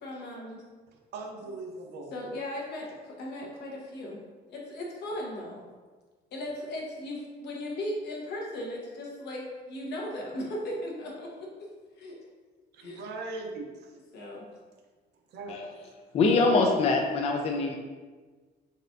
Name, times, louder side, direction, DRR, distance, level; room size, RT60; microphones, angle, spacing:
voice 1, 0.0-0.6 2.1-4.2 4.5-5.6 6.3-11.5 12.0-12.1 12.8-13.0 14.1-14.5, left 1 dB, 65° left, -2 dB, 1.0 m, -37 dB
voice 2, 1.1-2.1 12.7-13.9 15.3-15.6, right 3 dB, 65° right, 2 dB, 0.6 m, -39 dB
voice 3, 16.1-17.8, left 3 dB, 35° left, 3 dB, 0.4 m, -24 dB
4.1 x 3.4 x 2.6 m, 1.4 s
cardioid pair, 145°, 19 cm